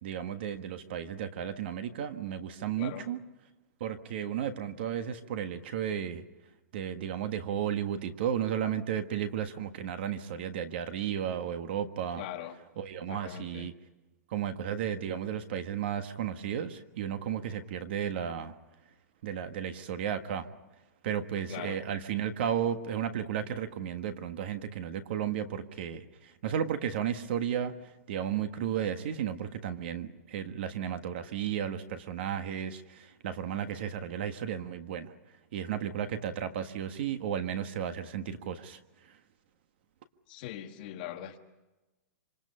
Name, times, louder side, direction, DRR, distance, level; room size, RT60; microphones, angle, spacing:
voice 1, 0.0-3.2 3.8-6.2 6.7-12.2 12.8-13.7 14.3-18.6 19.2-20.5 21.0-39.2, right 9 dB, 35° right, 9 dB, 1.5 m, -34 dB
voice 2, 12.2-12.6 13.1-13.7 21.5-21.8 40.3-41.4, left 12 dB, 30° left, 5 dB, 1.4 m, -41 dB
26.5 x 26.0 x 5.6 m, 1.1 s
hypercardioid pair, 180°, 9 cm